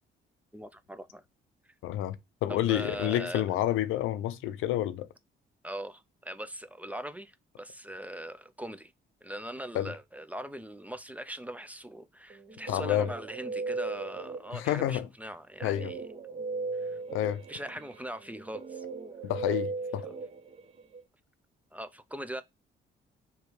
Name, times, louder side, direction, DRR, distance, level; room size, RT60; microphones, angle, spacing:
voice 1, 0.5-1.2 2.5-3.4 5.6-8.9 9.2-16.0 16.8-17.0 17.5-18.8 21.7-22.4, right 1 dB, 5° right, 0.4 m, -41 dB
voice 2, 1.8-2.2 2.4-5.1 9.7-9.9 12.7-13.1 14.5-15.1 15.6-15.9 17.1-17.4 19.2-20.1, left 13 dB, 90° left, 0.5 m, -29 dB
Guitar, 12.3-14.8 15.6-21.0, right 3 dB, 30° right, 0.8 m, -38 dB
3.2 x 3.0 x 4.6 m
cardioid pair, 90°, 20 cm